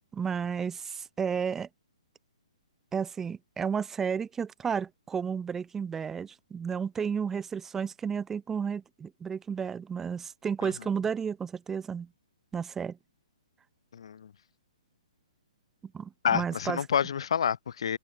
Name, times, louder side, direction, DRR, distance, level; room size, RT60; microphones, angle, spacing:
voice 1, 0.1-1.7 2.9-12.1 12.5-13.0 15.9-16.8, right 6 dB, 10° right, 0.5 m, -32 dB
voice 2, 13.9-14.3 16.2-18.0, left 8 dB, 55° left, 0.6 m, -28 dB
figure-of-eight pair, 125°, 3 cm